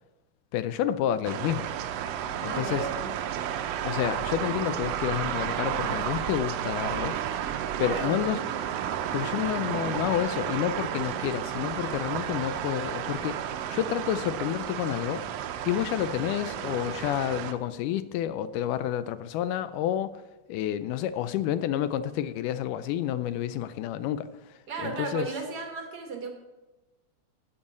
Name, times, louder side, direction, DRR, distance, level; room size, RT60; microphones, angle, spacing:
voice 1, 0.5-1.7 2.4-2.9 3.8-7.2 7.8-8.4 9.1-15.2 15.6-20.2 20.5-25.3, left 11 dB, 85° left, 13 dB, 2.1 m, -29 dB
sound 1, 1.2-17.5, right 10 dB, 85° right, 1.4 m, -32 dB
voice 2, 2.5-3.1 7.8-8.1 24.7-26.3, right 4 dB, 65° right, 3 dB, 0.9 m, -34 dB
11.5 x 5.5 x 8.2 m, 1.1 s
omnidirectional pair, 3.7 m